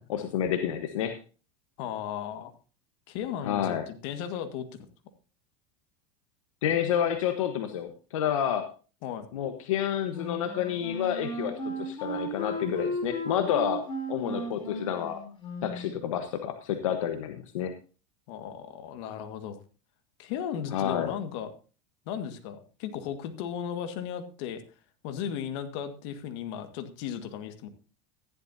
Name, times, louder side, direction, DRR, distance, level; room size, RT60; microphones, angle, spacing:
voice 1, 0.1-1.2 3.4-3.8 6.6-8.7 9.3-13.8 14.1-15.2 15.6-17.7 20.7-21.1, left 9 dB, 85° left, 7 dB, 1.3 m, -29 dB
voice 2, 1.8-2.5 3.1-4.9 9.0-9.3 18.3-19.6 20.2-21.5 22.1-24.6 25.0-27.7, left 9 dB, 65° left, 9 dB, 1.9 m, -36 dB
Wind instrument woodwind instrument, 10.1-16.0, right 1 dB, 30° left, 4.8 m, -35 dB
14.5 x 11.0 x 2.8 m, 0.34 s
supercardioid pair, 115°, 16 cm